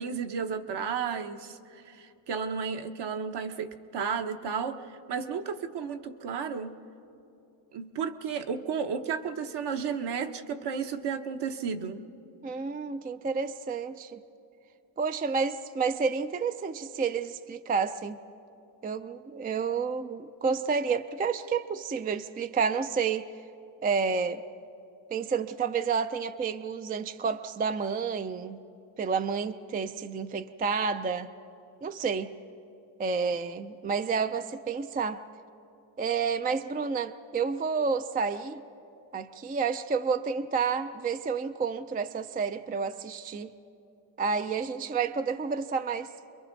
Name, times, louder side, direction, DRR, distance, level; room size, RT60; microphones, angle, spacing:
voice 1, 0.0-6.8 7.7-12.0, right 6 dB, 55° right, 6 dB, 1.2 m, -33 dB
voice 2, 12.4-14.2 15.0-18.2 18.8-23.2 23.8-24.4 25.1-28.6 29.0-31.3 31.8-32.3 33.0-35.2 36.0-38.6 39.1-43.5 44.2-46.1, right 5 dB, 20° right, 11 dB, 0.4 m, -30 dB
29.5 x 22.5 x 4.0 m, 2.8 s
cardioid pair, 120°, 47 cm